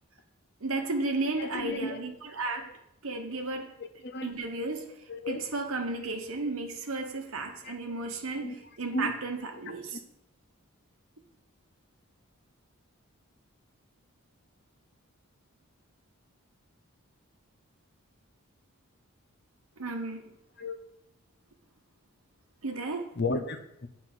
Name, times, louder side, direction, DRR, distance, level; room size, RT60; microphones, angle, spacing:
voice 1, 0.6-2.8 3.0-3.8 4.2-4.9 5.3-10.0 19.8-20.3 22.6-23.1, right 3 dB, 70° right, 1.0 m, -33 dB
voice 2, 1.4-2.0 4.0-4.3 5.1-5.4 7.6-7.7 8.4-8.6 8.9-9.1 9.7-9.8 20.6-20.8 23.2-23.9, left 2 dB, 50° left, 0.7 m, -33 dB
7.6 x 4.3 x 6.0 m
head